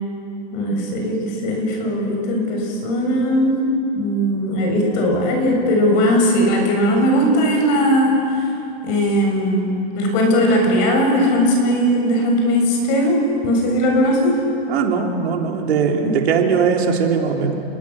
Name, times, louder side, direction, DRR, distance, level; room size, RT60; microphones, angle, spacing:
voice 1, 0.5-3.6 3.9-8.5 8.8-14.4 16.0-16.2, equal, 45° left, 1 dB, 7.3 m, -18 dB
voice 2, 14.7-17.6, right 6 dB, 75° right, 2 dB, 3.7 m, -19 dB
30.0 x 21.0 x 7.2 m, 2.7 s
supercardioid pair, 155°, 32 cm